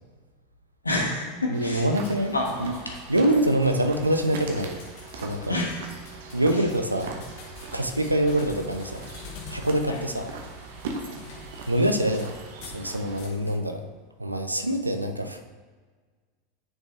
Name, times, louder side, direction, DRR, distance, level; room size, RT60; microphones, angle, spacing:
voice 1, 0.8-1.9 2.3-2.9 5.5-5.9 6.5-6.6 9.9-10.0 11.1-11.2, left 2 dB, 80° left, 0 dB, 1.3 m, -29 dB
sound 1, 1.5-13.2, right 4 dB, 60° right, 1.1 m, -41 dB
voice 2, 1.5-2.3 2.6-2.7 3.1-4.8 5.2-5.5 6.3-7.2 7.7-9.0 9.5-10.3 11.7-12.3 12.7-13.8 14.2-15.4, right 1 dB, 85° right, 5 dB, 0.6 m, -25 dB
sound 2, 2.0-12.8 13.2-13.6, left 4 dB, 55° left, 1.5 m, -47 dB
9.5 x 5.3 x 3.2 m, 1.4 s
figure-of-eight pair, 80°, 0 cm